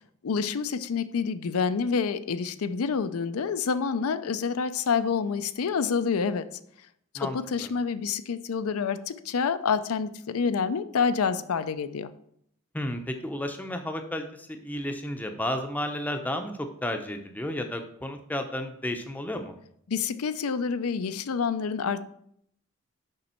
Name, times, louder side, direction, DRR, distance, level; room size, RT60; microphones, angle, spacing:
voice 1, 0.2-6.4 7.1-12.1 19.9-22.0, left 5 dB, 85° left, 11 dB, 0.5 m, -28 dB
voice 2, 7.2-7.7 12.7-16.5 16.8-19.5, left 1 dB, 10° left, 5 dB, 0.6 m, -32 dB
6.7 x 5.4 x 4.3 m, 0.69 s
head